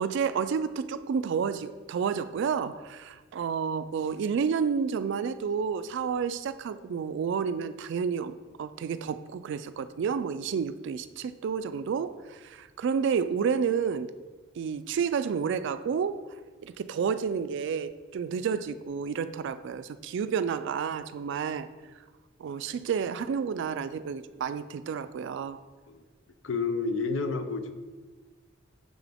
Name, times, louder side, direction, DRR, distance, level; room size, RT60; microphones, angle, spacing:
voice 1, 0.0-14.1 14.6-16.2 16.6-21.7 22.4-25.6, right 6 dB, 65° right, 14 dB, 0.3 m, -30 dB
voice 2, 26.4-27.7, left 4 dB, 75° left, 9 dB, 0.6 m, -30 dB
6.4 x 6.0 x 3.4 m, 1.4 s
head